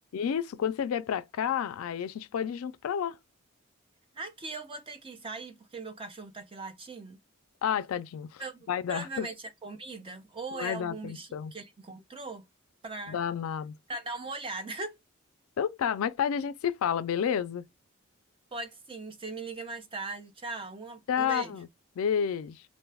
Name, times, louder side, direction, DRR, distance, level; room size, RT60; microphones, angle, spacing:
voice 1, 0.1-3.2 7.6-8.4 8.7-9.3 10.5-11.5 13.1-13.7 15.6-17.6 21.1-21.7 22.0-22.6, left 8 dB, 70° left, 0.3 m, -30 dB
voice 2, 4.1-7.2 8.4-12.4 12.8-13.2 13.9-15.0 18.5-21.6, right 3 dB, 25° right, 0.5 m, -39 dB
2.5 x 2.2 x 3.3 m
head